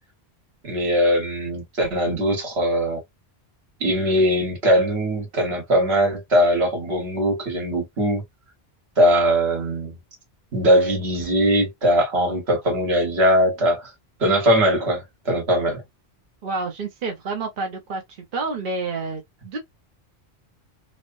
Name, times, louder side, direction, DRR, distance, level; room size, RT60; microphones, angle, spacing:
voice 1, 0.6-3.0 3.8-8.2 9.0-9.9 10.5-13.9 14.2-15.8, equal, 75° right, 1.4 m, -20 dB
voice 2, 16.4-18.0 18.3-19.6, right 3 dB, 55° right, 0.9 m, -29 dB
3.1 x 2.1 x 2.5 m
omnidirectional pair, 1.1 m